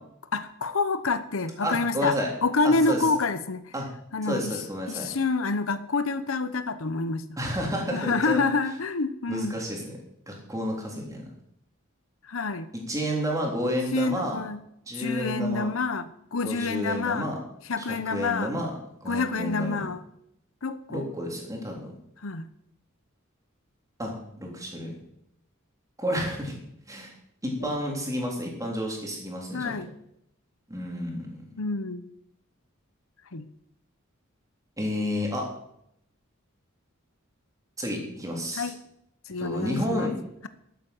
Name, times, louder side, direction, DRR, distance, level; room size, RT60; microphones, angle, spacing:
voice 1, 0.3-2.2 2.4-3.6 4.1-4.5 4.9-7.2 7.9-9.6 12.3-12.7 13.9-14.6 14.9-17.3 17.7-18.5 19.1-20.0 20.6-21.0 22.2-22.5 27.6-27.7 29.5-29.9 31.6-32.1 33.3-33.5 38.6-38.8 39.3-40.1, left 3 dB, 70° left, 12 dB, 0.9 m, -27 dB
voice 2, 1.6-2.3 2.6-3.1 3.7-3.9 4.2-5.1 7.4-8.4 9.3-10.0 10.3-11.2 12.7-14.4 14.9-15.7 16.4-17.4 17.8-18.7 19.0-19.8 20.9-21.9 24.0-24.9 26.0-26.5 26.9-27.1 27.4-29.7 30.7-31.4 34.8-35.5 37.8-38.7 39.4-40.2, equal, 15° right, 0 dB, 3.6 m, -30 dB
12.5 x 8.7 x 7.8 m, 0.76 s
head